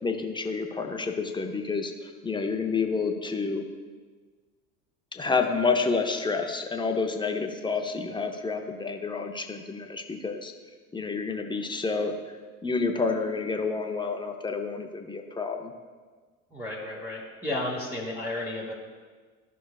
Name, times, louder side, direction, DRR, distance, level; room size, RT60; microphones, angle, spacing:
voice 1, 0.0-3.6 5.1-10.5 10.9-12.1 12.6-15.7, left 4 dB, 10° left, 4 dB, 0.7 m, -29 dB
voice 2, 16.5-18.7, left 1 dB, 5° right, -4 dB, 1.2 m, -33 dB
14.0 x 5.8 x 2.4 m, 1.5 s
figure-of-eight pair, 70°, 43 cm